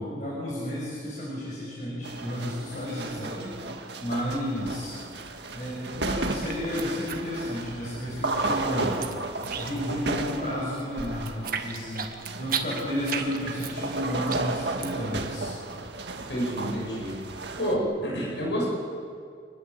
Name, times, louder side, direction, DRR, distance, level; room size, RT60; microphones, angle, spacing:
voice 1, 0.0-3.6 4.0-5.0 5.5-9.0 9.6-12.1 12.4-15.5, equal, 45° left, -6 dB, 6.5 m, -32 dB
sound 1, 2.0-17.8, right 2 dB, 70° right, 1.8 m, -34 dB
sound 2, 4.9-5.9 6.1-7.9 8.2-10.0 10.3-15.1, right 7 dB, 50° right, 1.7 m, -35 dB
voice 2, 16.3-17.1 17.6-18.7, equal, 70° left, -3 dB, 8.0 m, -28 dB
26.5 x 20.5 x 7.5 m, 2.3 s
head